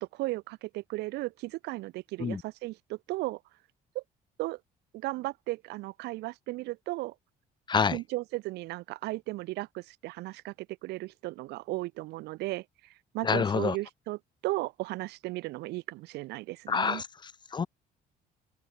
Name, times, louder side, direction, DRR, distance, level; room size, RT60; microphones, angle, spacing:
voice 1, 0.0-3.4 3.9-4.0 4.4-4.6 4.9-7.1 7.9-12.6 13.1-14.2 14.4-17.0, right 20 dB, 80° right, 0.6 m, -35 dB
voice 2, 7.7-8.0 13.2-13.8 16.7-17.7, left 6 dB, 25° left, 0.7 m, -28 dB
cardioid pair, 110°, 17 cm